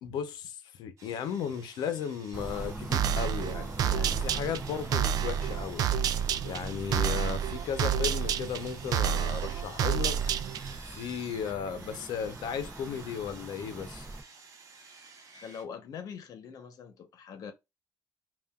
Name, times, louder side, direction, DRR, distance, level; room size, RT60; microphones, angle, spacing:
voice 1, 0.0-5.9 6.4-10.2 10.9-14.1, left 7 dB, 85° left, 0.8 m, -35 dB
Sawing, 1.0-15.6, right 4 dB, 45° right, 1.1 m, -52 dB
sound 1, 2.3-14.2, right 2 dB, 15° right, 0.5 m, -42 dB
sound 2, 2.9-10.8, right 9 dB, 65° right, 0.4 m, -29 dB
voice 2, 15.3-17.5, left 7 dB, 60° left, 0.9 m, -43 dB
5.6 x 2.5 x 2.3 m
cardioid pair, 155°, 7 cm